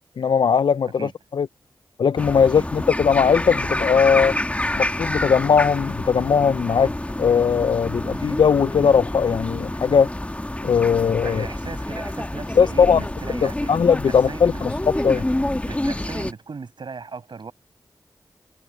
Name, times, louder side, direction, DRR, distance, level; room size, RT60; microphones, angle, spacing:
voice 1, 0.2-1.5 2.0-4.3 4.8-6.9 7.2-10.1 10.6-11.5 12.6-13.0 13.4-14.7 15.0-15.2, left 6 dB, 75° left, 0.4 m, -19 dB
sound 1, 2.2-16.3, left 1 dB, 15° left, 1.2 m, -28 dB
voice 2, 11.2-13.8 14.0-14.7 15.1-15.2 15.7-17.5, right 5 dB, 75° right, 7.9 m, -37 dB
cardioid pair, 45°, 8 cm